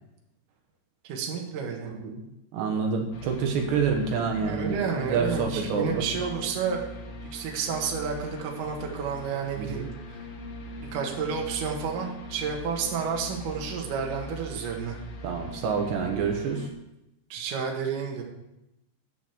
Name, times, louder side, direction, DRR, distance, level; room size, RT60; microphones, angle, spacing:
voice 1, 1.0-1.9 4.3-6.8 7.3-9.9 10.9-15.0 17.3-18.2, right 6 dB, 60° right, 0 dB, 2.9 m, -30 dB
voice 2, 1.9-2.2 2.5-6.1 9.6-9.9 15.2-16.7, right 5 dB, 85° right, 2 dB, 3.6 m, -28 dB
sound 1, 3.1-16.7, left 1 dB, 65° left, 1.7 m, -41 dB
11.0 x 6.4 x 7.5 m, 0.89 s
omnidirectional pair, 4.8 m